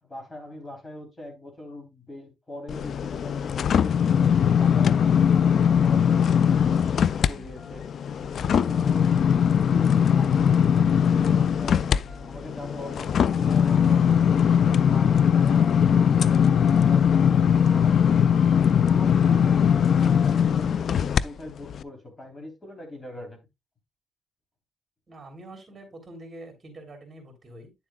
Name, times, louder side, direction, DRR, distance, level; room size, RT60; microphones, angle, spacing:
voice 1, 0.0-7.8 8.4-9.1 9.6-23.4, left 1 dB, 20° left, 3.4 m, -42 dB
sound 1, 2.7-7.3 7.7-21.2 21.7-21.8, left 8 dB, 55° left, 0.3 m, -20 dB
sound 2, 4.8-20.8, left 4 dB, 75° left, 1.7 m, -45 dB
voice 2, 25.1-27.7, right 1 dB, 30° right, 3.2 m, -45 dB
9.9 x 7.3 x 2.3 m
cardioid pair, 90°, 0 cm